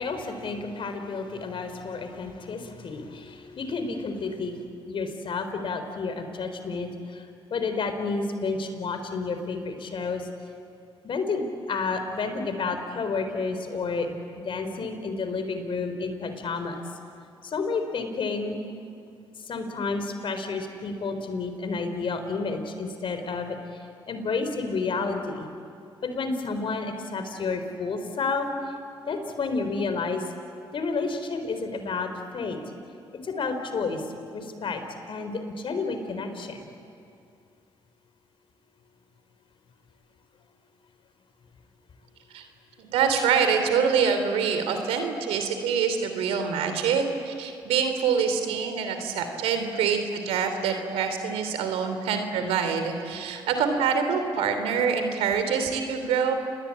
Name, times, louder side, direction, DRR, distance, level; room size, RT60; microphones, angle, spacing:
voice 1, 0.0-10.3 11.0-14.1 14.4-16.8 17.4-18.6 19.4-25.5 26.0-28.7 29.1-30.3 30.7-32.6 33.2-34.0 34.3-34.8 35.1-36.6, left 4 dB, 60° left, 7 dB, 4.0 m, -30 dB
voice 2, 42.9-56.3, right 6 dB, 85° right, 7 dB, 3.0 m, -25 dB
28.5 x 21.5 x 8.7 m, 2.4 s
supercardioid pair, 50°, 10 cm